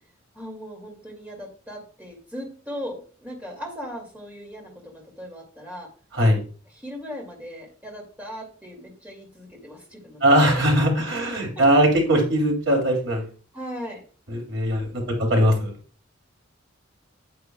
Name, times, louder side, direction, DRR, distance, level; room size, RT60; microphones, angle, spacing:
voice 1, 0.3-5.9 6.7-10.5 11.2-11.3 13.5-14.0, equal, 10° right, -1 dB, 2.6 m, -38 dB
voice 2, 10.2-13.3 14.3-15.7, equal, 70° right, 1 dB, 3.1 m, -20 dB
9.5 x 8.4 x 2.3 m, 0.40 s
head